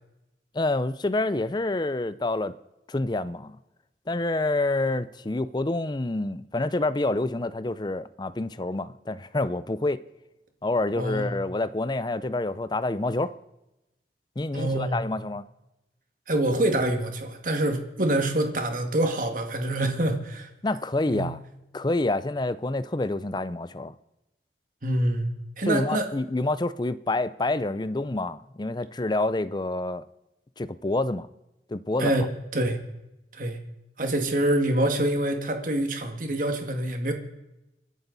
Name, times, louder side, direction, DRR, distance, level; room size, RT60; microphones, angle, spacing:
voice 1, 0.5-2.5 2.9-3.6 4.1-10.0 10.6-13.3 14.4-15.5 20.6-21.4 21.7-23.9 25.7-30.0 30.6-31.3 31.7-32.1, left 2 dB, 25° left, 0.5 m, -27 dB
voice 2, 11.0-11.3 14.5-15.0 16.3-20.5 21.1-21.3 24.8-26.1 32.0-32.3 32.5-32.8 33.3-33.6 34.0-37.1, right 1 dB, 50° right, 2.0 m, -26 dB
29.0 x 11.5 x 4.1 m
head